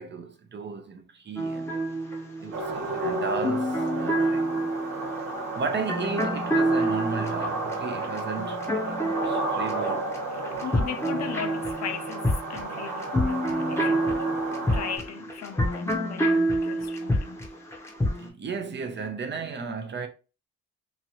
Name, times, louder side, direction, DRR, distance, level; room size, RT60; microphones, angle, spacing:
voice 1, 0.0-1.8 2.4-4.5 5.4-10.6 14.1-14.2 18.2-20.1, right 5 dB, 35° right, 0.7 m, -35 dB
sound 1, 1.4-10.2 10.4-18.3, right 1 dB, 10° left, 0.8 m, -28 dB
sound 2, 2.5-15.0, right 2 dB, 75° right, 1.3 m, -32 dB
voice 2, 10.3-14.2 14.6-17.4, left 8 dB, 60° left, 0.6 m, -37 dB
3.0 x 2.5 x 2.8 m
cardioid pair, 90°, 30 cm